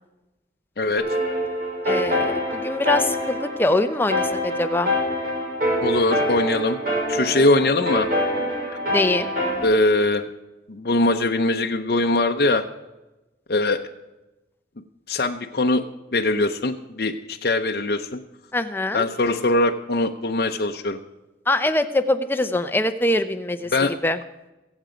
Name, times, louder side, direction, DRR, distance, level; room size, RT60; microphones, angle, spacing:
voice 1, 0.8-1.1 5.8-6.8 7.1-8.1 9.6-10.2 10.7-12.6 13.5-13.8 15.1-15.8 16.1-18.2 18.9-21.0 23.7-24.0, left 2 dB, 60° left, 3 dB, 0.7 m, -21 dB
sound 1, 1.0-9.6, equal, 50° right, 6.6 m, -25 dB
voice 2, 1.8-4.9 8.9-9.3 18.5-19.0 21.5-24.2, left 2 dB, 10° left, 8 dB, 0.6 m, -23 dB
23.0 x 8.1 x 5.1 m, 1.0 s
head